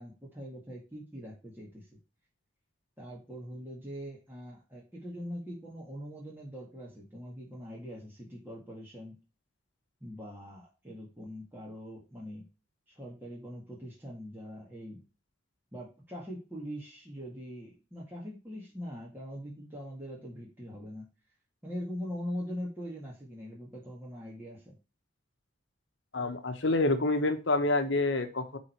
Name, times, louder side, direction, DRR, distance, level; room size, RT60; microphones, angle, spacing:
voice 1, 0.0-2.0 3.0-9.2 10.0-12.5 12.9-15.1 15.7-21.1 21.6-24.8, equal, 10° right, -4 dB, 1.9 m, -42 dB
voice 2, 26.1-28.6, left 2 dB, 60° left, 8 dB, 1.1 m, -27 dB
8.9 x 3.9 x 4.5 m, 0.31 s
head